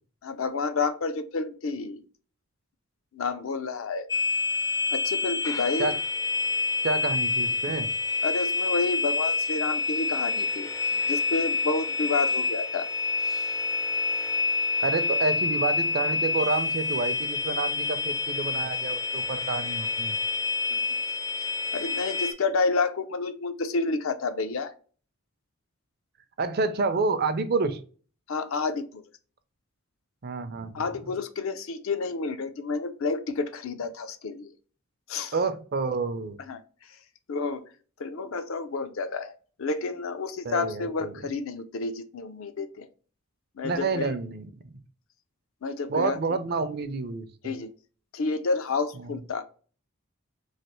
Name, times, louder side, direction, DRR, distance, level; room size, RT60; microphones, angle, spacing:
voice 1, 0.2-2.0 3.1-4.1 4.9-5.9 8.2-10.7 11.0-12.9 20.7-20.8 21.7-24.7 28.3-29.0 30.7-34.5 35.1-35.3 36.5-36.6 36.9-37.0 37.3-37.7 38.0-39.3 39.6-42.9 43.6-44.1 45.6-46.2 47.4-47.7 48.1-49.4, left 4 dB, 70° left, 10 dB, 0.5 m, -30 dB
sound 1, 4.1-22.3, left 4 dB, 15° left, 0.4 m, -28 dB
voice 2, 6.8-7.9 14.8-20.2 26.4-27.8 30.2-30.9 35.3-36.4 40.4-41.1 43.6-44.8 45.9-47.5, right 3 dB, 45° right, 10 dB, 0.5 m, -29 dB
3.2 x 2.8 x 3.0 m, 0.40 s
head